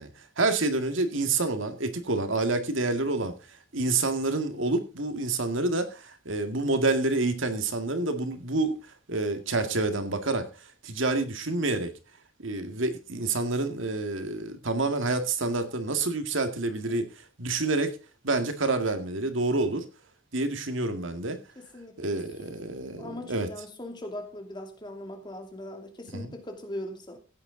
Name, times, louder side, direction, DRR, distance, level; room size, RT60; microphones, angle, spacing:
voice 1, 0.0-3.3 3.7-8.8 9.1-11.9 12.4-17.1 17.4-18.0 18.2-19.8 20.3-21.4 22.0-23.5 26.1-26.3, right 3 dB, 70° right, 2.0 m, -28 dB
voice 2, 21.6-22.3 23.0-27.2, left 1 dB, 20° left, 2.6 m, -40 dB
15.5 x 9.5 x 3.9 m
head